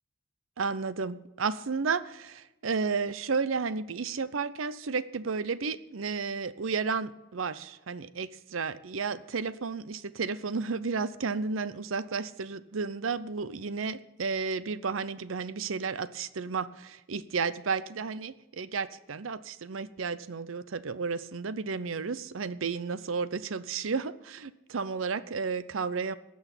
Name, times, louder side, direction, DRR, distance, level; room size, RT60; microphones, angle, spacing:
voice 1, 0.6-26.2, right 5 dB, 80° right, 16 dB, 0.6 m, -32 dB
16.5 x 6.3 x 9.0 m, 0.93 s
head